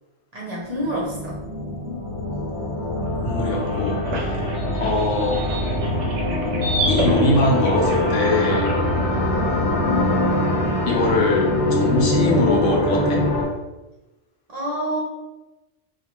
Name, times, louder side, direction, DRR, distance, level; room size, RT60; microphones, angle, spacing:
voice 1, 0.3-1.4 4.7-4.9 9.3-9.6 14.5-15.0, right 1 dB, 40° right, -5 dB, 0.7 m, -28 dB
sound 1, 0.6-13.4, left 1 dB, 65° left, 1.0 m, -23 dB
voice 2, 3.2-4.0 4.7-5.4 6.9-8.7 10.8-13.2, left 2 dB, 85° left, -1 dB, 1.0 m, -22 dB
sound 2, 3.3-8.8, right 1 dB, 80° right, 0.9 m, -31 dB
2.7 x 2.3 x 2.9 m, 1.1 s
omnidirectional pair, 1.2 m